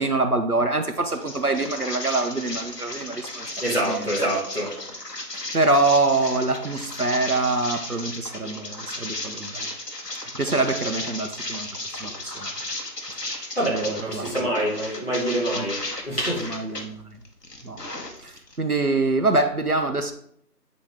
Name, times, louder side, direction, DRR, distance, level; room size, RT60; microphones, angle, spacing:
voice 1, 0.0-4.3 5.5-9.7 10.4-12.5 13.7-14.7 15.5-15.7 16.5-17.2 17.6-17.8 18.2-20.1, right 2 dB, 65° right, 7 dB, 0.8 m, -25 dB
sound 1, 1.1-16.8 17.2-18.6, left 2 dB, 75° left, 1.4 m, -35 dB
voice 2, 3.6-4.7 13.6-16.4, right 1 dB, 35° left, -7 dB, 2.3 m, -26 dB
8.5 x 4.1 x 3.5 m, 0.66 s
figure-of-eight pair, 180°, 49 cm